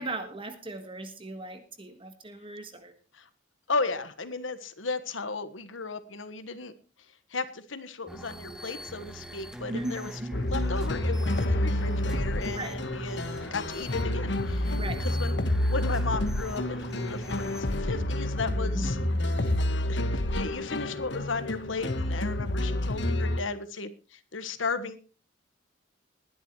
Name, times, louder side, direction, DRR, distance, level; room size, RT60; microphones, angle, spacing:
voice 1, 0.0-2.9 9.7-10.3 12.5-12.8 14.8-15.1 18.5-19.2, right 2 dB, 25° right, 8 dB, 1.6 m, -38 dB
voice 2, 3.7-6.7 7.3-13.2 13.5-19.0 19.9-25.0, left 4 dB, 85° left, 12 dB, 1.4 m, -35 dB
sound 1, 8.1-17.6, right 1 dB, 5° right, 1.4 m, -41 dB
sound 2, 10.3-23.4, left 1 dB, 65° left, 1.3 m, -29 dB
20.5 x 10.5 x 3.1 m, 0.33 s
head